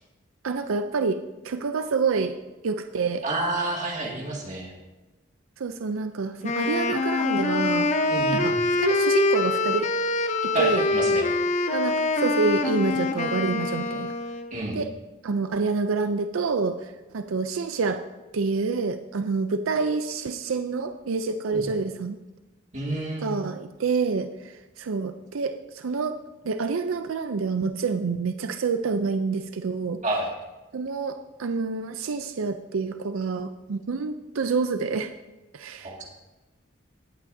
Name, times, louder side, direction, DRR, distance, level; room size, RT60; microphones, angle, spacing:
voice 1, 0.4-1.2 1.4-2.4 2.6-3.2 5.6-7.9 8.3-9.9 10.4-10.8 11.7-14.1 14.7-14.9 15.2-18.0 18.3-22.2 23.2-26.2 26.4-30.0 30.7-35.1 35.5-36.0, right 4 dB, 90° right, 8 dB, 0.5 m, -27 dB
voice 2, 3.2-4.7 8.1-8.6 10.5-11.3 14.5-14.8 21.5-21.6 22.7-23.4 30.0-30.3 35.8-36.0, right 2 dB, 35° right, -2 dB, 2.1 m, -29 dB
Wind instrument woodwind instrument, 6.4-14.5, left 3 dB, 35° left, 0.6 m, -25 dB
18.5 x 8.3 x 2.7 m, 1.1 s
head